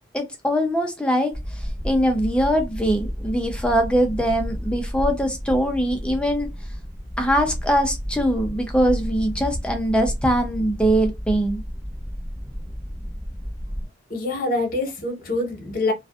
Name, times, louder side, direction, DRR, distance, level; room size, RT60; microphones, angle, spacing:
voice 1, 0.1-1.3 1.8-6.5 7.2-11.6, equal, 5° left, 0.5 m, -22 dB
sound 1, 1.3-13.9, equal, 20° right, 1.2 m, -32 dB
voice 2, 14.1-15.9, left 2 dB, 50° left, 0.9 m, -25 dB
2.4 x 2.4 x 2.3 m
head